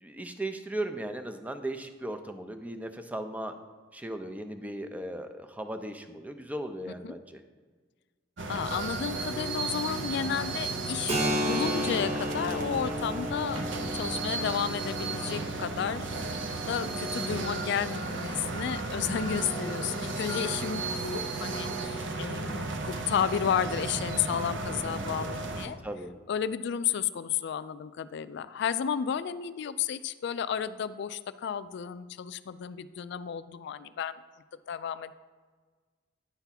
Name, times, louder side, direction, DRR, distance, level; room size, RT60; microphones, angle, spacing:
voice 1, 0.0-3.5 3.9-7.4 19.7-19.8 25.8-26.1, right 1 dB, 10° right, 7 dB, 0.5 m, -37 dB
sound 1, 8.4-25.7, right 3 dB, 70° right, 0.7 m, -34 dB
voice 2, 8.5-11.1 11.5-13.6 13.9-16.1 16.7-25.8 26.3-34.2 34.7-35.1, left 8 dB, 65° left, 15 dB, 0.3 m, -32 dB
Keyboard (musical), 11.1-18.5, equal, 35° right, 1.0 m, -35 dB
9.7 x 3.5 x 5.7 m, 1.5 s
head